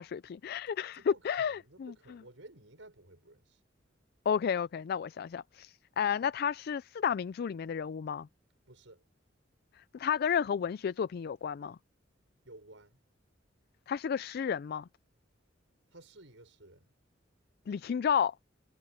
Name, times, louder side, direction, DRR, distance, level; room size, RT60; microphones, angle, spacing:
voice 1, 0.0-1.9 4.3-8.3 9.8-11.8 13.9-14.9 17.7-18.3, left 7 dB, 55° left, 0.3 m, -32 dB
voice 2, 0.9-3.6 8.7-9.0 12.4-13.0 15.9-16.9, right 2 dB, 85° right, 6.1 m, -55 dB
head